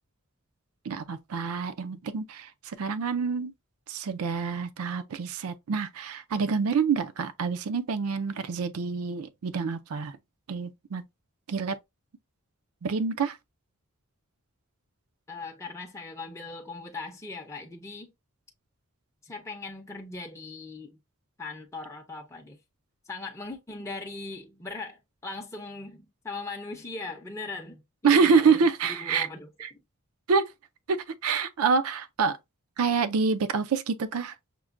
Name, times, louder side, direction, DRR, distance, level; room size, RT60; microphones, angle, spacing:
voice 1, 0.9-3.5 3.9-10.1 10.5-11.0 11.5-11.8 12.8-13.4 28.0-29.3 30.3-30.5 30.9-32.4 32.8-34.3, right 5 dB, 85° right, 0.5 m, -26 dB
voice 2, 15.3-18.1 19.2-21.0 21.4-22.6 23.0-29.8, left 3 dB, 15° left, 0.5 m, -39 dB
5.9 x 2.2 x 2.5 m
head